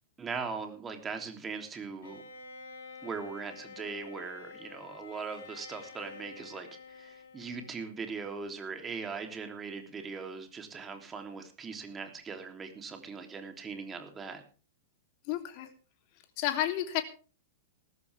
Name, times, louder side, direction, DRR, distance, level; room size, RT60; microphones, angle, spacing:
voice 1, 0.2-2.2 3.0-14.4, right 5 dB, 20° right, 5 dB, 3.3 m, -40 dB
Bowed string instrument, 2.0-8.1, left 5 dB, 65° left, 5.6 m, -49 dB
voice 2, 15.3-15.7 16.4-17.0, left 12 dB, 45° left, 5 dB, 3.3 m, -31 dB
19.5 x 14.5 x 3.6 m, 0.38 s
figure-of-eight pair, 100°, 0 cm